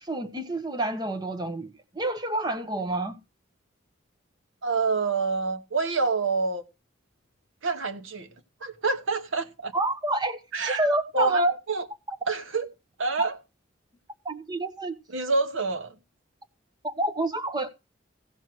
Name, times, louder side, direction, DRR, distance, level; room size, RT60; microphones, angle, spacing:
voice 1, 0.0-3.2 9.7-11.6 12.1-12.2 14.2-15.0 16.8-17.7, right 2 dB, 20° right, 1.1 m, -28 dB
voice 2, 4.6-6.6 7.6-8.3 8.6-9.7 10.5-10.9 11.1-11.4 11.7-11.8 12.3-12.7 13.0-13.3 15.1-15.9, right 3 dB, 80° right, 1.1 m, -27 dB
15.5 x 6.0 x 4.6 m
head